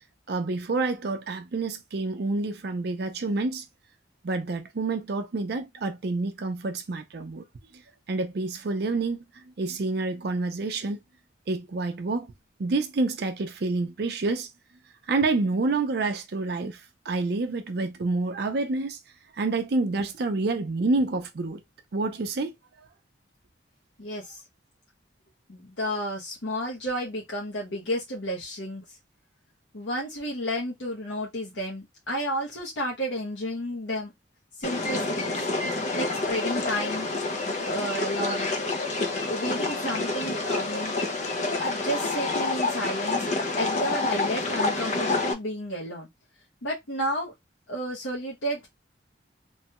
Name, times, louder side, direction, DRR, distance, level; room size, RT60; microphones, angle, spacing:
voice 1, 0.3-3.6 4.2-7.4 7.7-7.8 8.1-11.0 11.5-12.3 12.6-14.5 15.1-19.0 19.3-21.6 21.9-22.5, right 3 dB, 55° right, 0.5 m, -28 dB
voice 2, 24.0-24.4 25.5-28.8 29.7-34.1 34.6-35.5 35.9-37.1 37.7-38.6 39.3-41.0 41.6-43.3 43.6-46.1 46.6-47.3 47.7-48.7, equal, 80° left, 0.9 m, -32 dB
sound 1, 34.6-45.3, left 3 dB, 40° left, 0.5 m, -28 dB
3.1 x 2.2 x 2.8 m
head